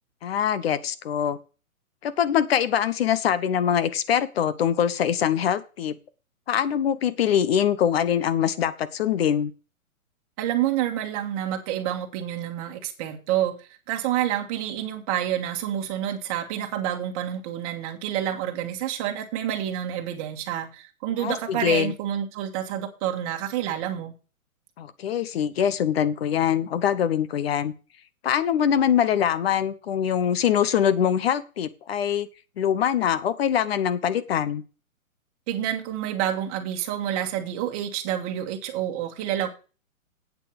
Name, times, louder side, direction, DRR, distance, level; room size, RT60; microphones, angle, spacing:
voice 1, 0.2-1.4 2.0-6.0 6.5-9.5 21.2-21.9 24.8-27.7 28.2-32.3 32.6-34.6, left 9 dB, 45° left, 16 dB, 1.1 m, -23 dB
voice 2, 10.4-24.1 35.5-39.5, right 11 dB, 25° right, 4 dB, 1.8 m, -28 dB
8.7 x 7.4 x 6.6 m, 0.34 s
hypercardioid pair, 160°, 42 cm